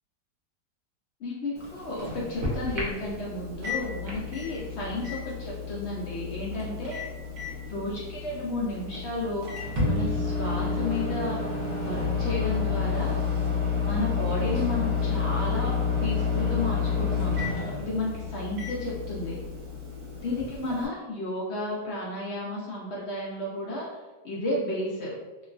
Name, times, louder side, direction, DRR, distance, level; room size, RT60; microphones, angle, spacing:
voice 1, 1.2-7.0 7.7-9.5 9.9-11.4 11.8-13.2 13.8-15.7 16.0-17.4 17.8-19.4 20.2-23.9 24.2-25.1, left 2 dB, 85° left, -5 dB, 0.5 m, -32 dB
Microwave oven, 1.6-20.9, left 5 dB, 60° right, 1.1 m, -30 dB
3.0 x 2.2 x 2.4 m, 1.1 s
omnidirectional pair, 1.8 m